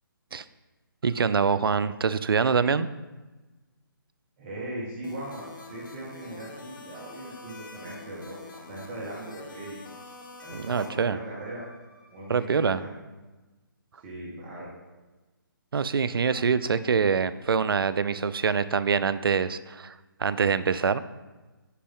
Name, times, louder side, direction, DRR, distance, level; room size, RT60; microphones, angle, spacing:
voice 1, 1.0-2.9 10.5-11.2 12.3-12.8 15.7-21.0, right 6 dB, 80° right, 15 dB, 0.5 m, -25 dB
voice 2, 4.4-9.8 10.4-11.6 12.1-12.9 14.0-14.7, right 1 dB, 25° right, -4 dB, 1.7 m, -39 dB
sound 1, 5.0-10.9, left 4 dB, 60° left, 1.3 m, -46 dB
Bowed string instrument, 5.2-12.5, equal, 45° right, 2.7 m, -57 dB
10.0 x 5.2 x 3.7 m, 1.2 s
hypercardioid pair, 155°, 12 cm